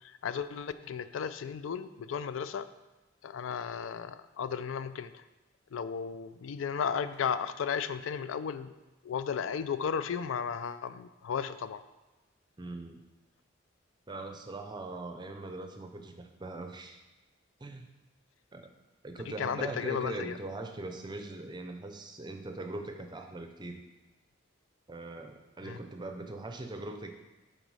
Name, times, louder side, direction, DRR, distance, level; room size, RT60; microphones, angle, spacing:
voice 1, 0.0-2.7 3.2-5.2 5.7-8.7 9.0-11.8 19.3-20.4 25.6-25.8, left 7 dB, 80° left, 13 dB, 0.4 m, -34 dB
voice 2, 12.6-13.0 14.1-17.0 17.6-17.9 18.5-18.7 19.0-23.8 24.9-27.1, right 2 dB, 20° right, 5 dB, 0.6 m, -41 dB
8.1 x 3.9 x 4.8 m, 1.1 s
head